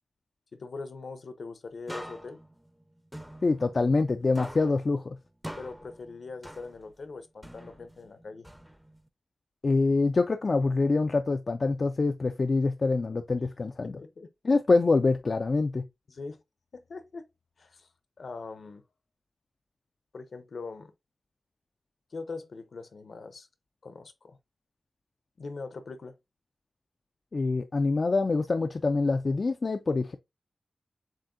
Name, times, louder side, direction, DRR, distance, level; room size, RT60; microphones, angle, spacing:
voice 1, 0.5-2.4 5.6-8.5 13.8-14.3 16.1-16.4 16.7-17.3 17.6-17.9 18.2-18.8 20.1-20.9 22.1-23.5 23.8-24.4 25.4-26.2, left 4 dB, 65° left, 0.8 m, -42 dB
sound 1, 1.9-4.1 4.4-7.0 7.4-9.1, equal, 5° right, 0.6 m, -45 dB
voice 2, 3.4-5.2 9.6-14.0 14.4-15.8 27.3-30.1, left 3 dB, 45° left, 0.4 m, -25 dB
7.4 x 2.6 x 2.6 m
wide cardioid pair, 110°, 0 cm